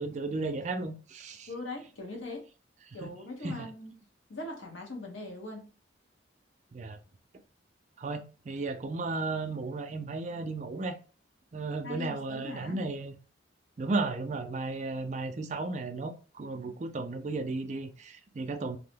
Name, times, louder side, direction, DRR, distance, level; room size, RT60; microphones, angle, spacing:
voice 1, 0.0-1.5 3.0-3.1 3.4-3.7 6.7-7.0 8.0-11.0 11.5-13.1 13.8-18.8, right 3 dB, 40° right, 0.4 m, -34 dB
voice 2, 1.5-2.5 2.9-3.9 4.3-5.7 11.8-12.8, left 2 dB, 90° left, 1.0 m, -40 dB
2.6 x 2.1 x 3.3 m
head